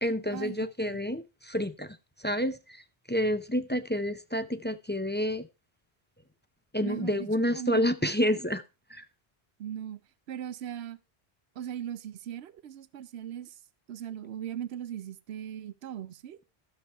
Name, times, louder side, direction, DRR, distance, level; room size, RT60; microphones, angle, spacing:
voice 1, 0.0-2.8 3.1-5.5 6.7-8.6 8.9-9.1, equal, 15° left, 0.5 m, -29 dB
voice 2, 6.8-7.3 7.5-7.9 9.6-10.0 10.3-11.0 11.6-13.6 13.9-16.4, right 10 dB, 70° right, 1.0 m, -38 dB
12.5 x 7.0 x 4.5 m
omnidirectional pair, 1.1 m